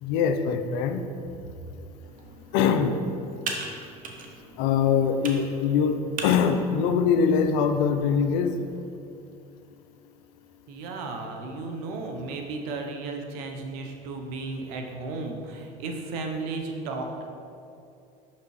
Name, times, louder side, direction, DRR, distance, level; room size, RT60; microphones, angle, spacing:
voice 1, 0.0-1.0 2.5-2.9 4.6-6.0 6.2-8.6, left 6 dB, 75° left, 8 dB, 0.5 m, -23 dB
Computer keyboard, 2.0-8.8, right 4 dB, 45° right, 0.9 m, -41 dB
voice 2, 10.7-17.3, right 3 dB, 80° right, 3 dB, 0.8 m, -34 dB
6.1 x 5.7 x 3.1 m, 2.6 s
supercardioid pair, 90°, 19 cm